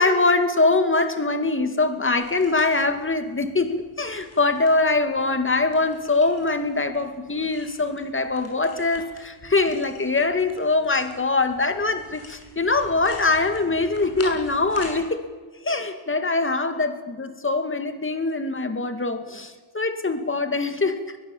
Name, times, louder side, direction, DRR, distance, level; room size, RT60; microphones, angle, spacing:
voice 1, 0.0-15.2 15.6-21.0, left 3 dB, 25° left, 8 dB, 2.3 m, -23 dB
sound 1, 2.2-15.0, left 3 dB, 80° left, 7.5 m, -45 dB
22.0 x 21.5 x 7.3 m, 1.3 s
wide cardioid pair, 140°, 49 cm